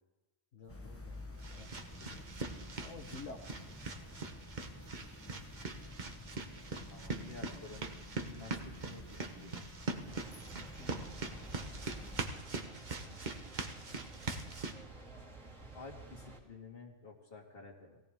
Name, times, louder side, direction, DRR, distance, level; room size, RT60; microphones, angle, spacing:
voice 1, 0.5-4.2 10.8-11.3, left 4 dB, 80° left, 0 dB, 1.6 m, -52 dB
sound 1, 0.7-12.3, left 1 dB, 15° left, 0.9 m, -50 dB
sound 2, 0.7-14.7, right 3 dB, 40° right, 1.2 m, -42 dB
voice 2, 6.9-9.5 12.9-14.0 15.7-18.0, left 3 dB, 50° left, 1 dB, 2.3 m, -52 dB
sound 3, 10.0-16.4, right 3 dB, 85° right, 2.4 m, -52 dB
20.0 x 17.0 x 3.6 m, 1.1 s
omnidirectional pair, 1.3 m